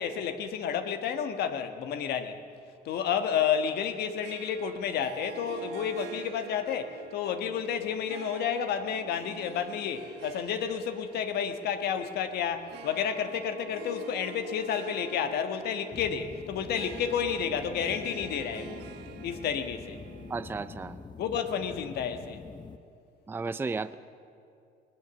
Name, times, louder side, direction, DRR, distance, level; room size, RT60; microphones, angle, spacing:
voice 1, 0.0-2.3 2.8-18.8 19.2-20.0 21.2-22.4, left 8 dB, 70° left, 8 dB, 1.4 m, -31 dB
Harp, 4.2-21.0, right 9 dB, 80° right, 1.3 m, -47 dB
sound 1, 15.9-22.8, left 4 dB, 25° left, 0.8 m, -45 dB
voice 2, 20.3-21.0 23.3-23.9, right 4 dB, 15° right, 13 dB, 0.4 m, -33 dB
20.0 x 19.0 x 7.1 m, 2.5 s
cardioid pair, 110°, 17 cm